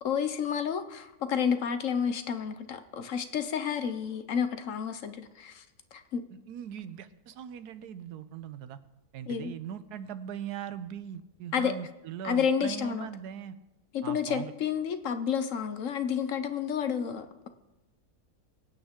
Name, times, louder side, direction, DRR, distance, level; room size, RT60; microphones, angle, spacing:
voice 1, 0.0-5.6 5.9-6.2 9.3-9.5 11.5-11.7 12.2-13.1 13.9-17.5, left 7 dB, 60° left, 10 dB, 1.1 m, -30 dB
voice 2, 6.3-8.8 9.1-13.6 14.0-14.5, right 9 dB, 85° right, 13 dB, 1.3 m, -40 dB
24.0 x 8.8 x 3.6 m, 1.0 s
omnidirectional pair, 1.6 m